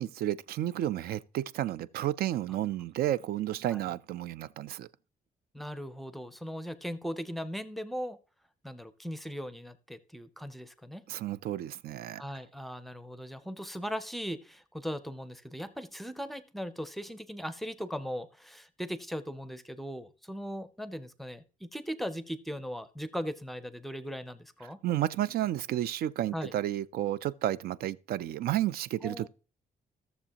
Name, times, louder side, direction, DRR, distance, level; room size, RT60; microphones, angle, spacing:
voice 1, 0.0-4.9 11.1-12.2 24.8-29.3, right 13 dB, 75° right, 0.4 m, -32 dB
voice 2, 5.5-8.2 8.6-11.0 12.2-24.8 26.3-26.5 29.0-29.3, equal, ahead, 0.5 m, -38 dB
15.0 x 6.9 x 2.9 m
cardioid pair, 165°, 16 cm